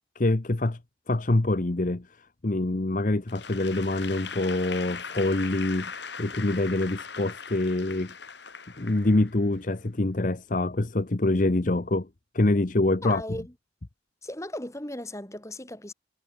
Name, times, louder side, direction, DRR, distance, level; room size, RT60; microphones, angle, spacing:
voice 1, 0.2-0.8 1.1-5.9 6.2-8.1 8.8-12.1 12.3-13.2, left 2 dB, 45° left, 0.9 m, -25 dB
Applause / Crowd, 3.3-9.7, left 6 dB, 65° left, 7.6 m, -40 dB
voice 2, 13.0-13.5 14.2-15.9, left 1 dB, 15° left, 3.1 m, -36 dB
head